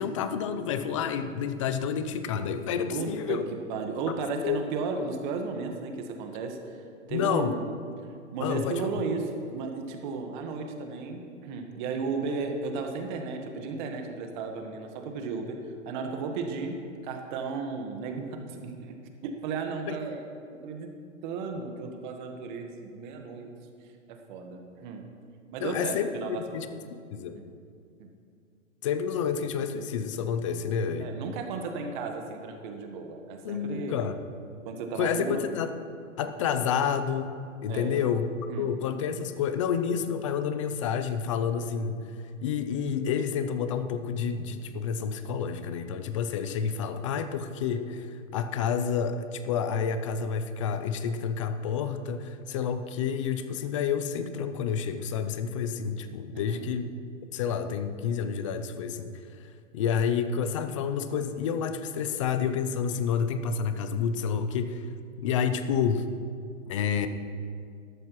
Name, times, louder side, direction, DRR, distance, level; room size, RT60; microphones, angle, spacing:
voice 1, 0.0-3.5 4.4-4.6 7.1-7.6 8.4-8.9 19.9-20.0 25.6-27.4 28.8-31.1 33.4-34.2 34.9-35.7 36.2-37.3 37.6-56.9 57.3-59.1 59.7-64.9 65.2-66.1 66.7-67.1, left 7 dB, 25° left, 10 dB, 0.4 m, -29 dB
voice 2, 2.8-3.4 3.7-6.8 7.1-7.6 8.3-18.9 19.2-20.2 20.6-20.9 21.2-23.5 24.1-25.1 25.5-26.6 27.3-27.4 28.0-28.1 31.0-34.0 34.6-35.4 36.2-36.3 37.7-38.0 38.5-38.7 56.3-56.7, right 4 dB, 35° right, 4 dB, 1.4 m, -34 dB
14.0 x 12.0 x 3.1 m, 2.3 s
hypercardioid pair, 140°, 40 cm